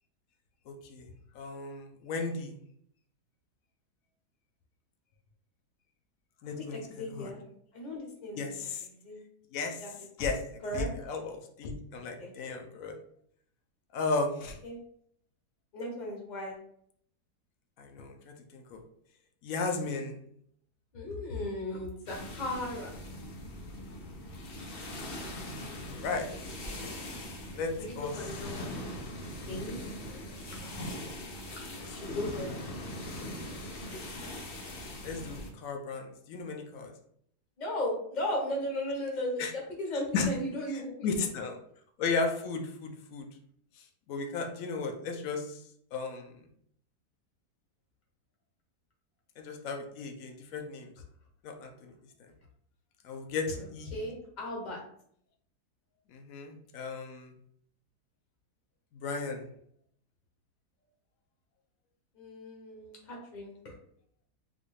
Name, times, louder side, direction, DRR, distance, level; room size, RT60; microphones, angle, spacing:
voice 1, 0.7-1.1 1.3-2.6 6.4-6.8 7.1-7.3 8.4-8.8 9.5-9.8 10.2-10.4 10.7-13.0 13.9-14.6 17.8-18.8 19.4-20.2 26.0-26.3 27.5-27.7 28.0-28.1 31.8-32.4 35.0-36.9 39.4-39.5 40.1-40.3 41.0-41.6 42.0-43.3 44.1-45.6 45.9-46.3 49.4-50.9 51.4-51.7 53.0-53.9 56.1-57.3 59.0-59.5, left 4 dB, 65° left, 4 dB, 0.9 m, -35 dB
voice 2, 6.5-7.4 7.7-9.2 9.8-10.0 10.6-10.9 12.2-12.3 14.6-14.8 15.7-16.6 20.9-22.9 27.8-28.9 29.5-30.2 30.6-30.7 31.8-32.5 37.6-41.1 53.9-54.8 62.1-63.7, left 1 dB, 35° left, -1 dB, 0.8 m, -36 dB
sound 1, 22.1-35.5, left 1 dB, 85° left, 0.5 m, -41 dB
4.0 x 2.3 x 3.1 m, 0.67 s
omnidirectional pair, 1.8 m